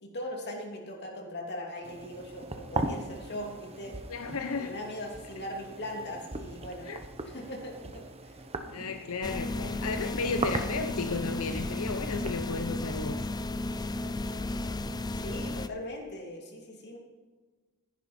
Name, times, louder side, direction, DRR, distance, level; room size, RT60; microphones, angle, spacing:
voice 1, 0.0-4.0 4.5-6.9 7.2-8.4 8.8-9.0 15.1-17.0, left 1 dB, 50° left, 1 dB, 2.9 m, -40 dB
sound 1, 1.8-12.3, right 2 dB, 25° right, 1.0 m, -39 dB
voice 2, 4.1-4.7 6.8-7.0 8.7-13.2, left 4 dB, 70° left, 7 dB, 0.8 m, -34 dB
sound 2, 9.2-15.7, left 2 dB, 20° left, 0.5 m, -34 dB
15.0 x 10.5 x 4.4 m, 1.4 s
head